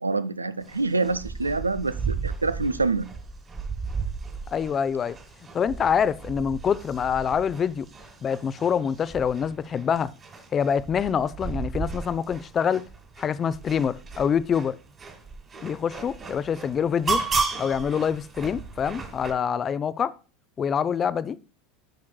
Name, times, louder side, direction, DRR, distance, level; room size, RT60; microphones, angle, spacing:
voice 1, 0.0-3.1, right 3 dB, 80° right, 0.3 m, -26 dB
sound 1, 0.6-19.3, right 4 dB, 25° right, 1.7 m, -35 dB
voice 2, 4.5-5.2 5.5-7.9 8.2-10.1 10.5-12.9 13.2-14.7 15.6-17.2 17.6-20.1 20.6-21.4, left 7 dB, 30° left, 0.5 m, -25 dB
14.0 x 5.8 x 2.3 m
figure-of-eight pair, 75°, 0 cm